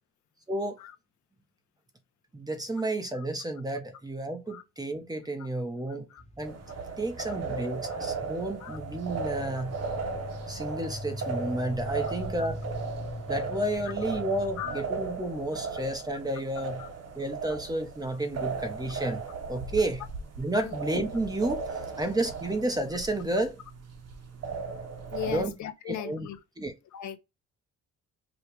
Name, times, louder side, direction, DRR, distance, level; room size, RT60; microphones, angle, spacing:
voice 1, 0.5-0.8 2.3-6.1 6.4-6.5 7.0-9.8 10.5-12.6 13.3-16.8 17.1-19.2 19.5-20.0 20.4-21.7 22.0-23.6 25.3-25.5 25.9-26.3 26.6-26.7, right 1 dB, 15° right, 1.0 m, -31 dB
sound 1, 6.2-14.8, left 1 dB, 20° left, 1.0 m, -42 dB
sound 2, 6.4-25.4, right 4 dB, 55° right, 1.1 m, -37 dB
voice 2, 20.6-21.0 25.1-26.4 26.9-27.2, left 12 dB, 70° left, 0.8 m, -38 dB
4.9 x 2.4 x 3.2 m
cardioid pair, 90°, 30 cm